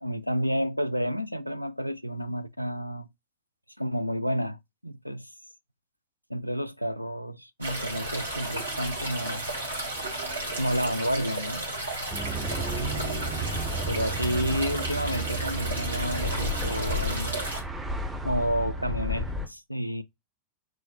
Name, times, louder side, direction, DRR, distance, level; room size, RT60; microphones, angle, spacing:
voice 1, 0.0-3.1 3.8-5.3 6.3-9.5 10.6-11.7 12.8-17.4 18.2-20.0, equal, 90° right, 0.3 m, -30 dB
sound 1, 7.6-17.6, right 1 dB, 75° right, 1.5 m, -33 dB
sound 2, 12.1-19.5, right 1 dB, 10° right, 0.9 m, -32 dB
6.0 x 2.1 x 2.9 m
figure-of-eight pair, 90°, 0 cm